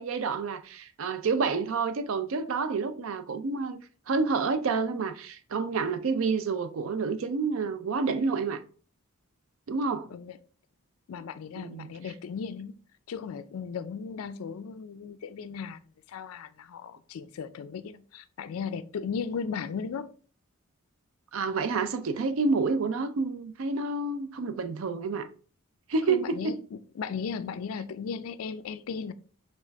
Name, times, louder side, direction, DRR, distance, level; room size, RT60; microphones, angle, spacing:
voice 1, 0.0-3.8 4.1-8.6 9.7-10.1 11.6-11.9 21.3-25.3 25.9-26.5, right 4 dB, 65° right, 0.4 m, -29 dB
voice 2, 11.1-12.7 13.1-15.8 16.1-20.1 26.1-29.1, left 6 dB, 70° left, 0.3 m, -36 dB
4.5 x 2.4 x 3.4 m
head